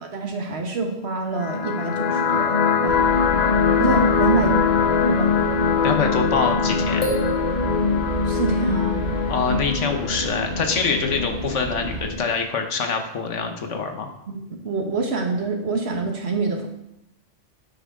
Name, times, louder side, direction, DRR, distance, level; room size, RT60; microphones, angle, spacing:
voice 1, 0.0-3.0 3.8-4.6 5.1-5.3 8.3-9.2 14.3-16.7, right 3 dB, 60° right, 3 dB, 1.5 m, -26 dB
sound 1, 1.3-12.3, left 5 dB, 50° left, 0.5 m, -22 dB
sound 2, 2.9-12.1, right 3 dB, 45° right, 1.0 m, -32 dB
sound 3, 5.4-5.5 6.8-8.5, equal, 30° left, 1.8 m, -32 dB
voice 2, 5.8-7.0 9.3-14.1, left 5 dB, 85° left, 5 dB, 1.4 m, -25 dB
9.5 x 7.5 x 3.7 m, 0.84 s
omnidirectional pair, 1.2 m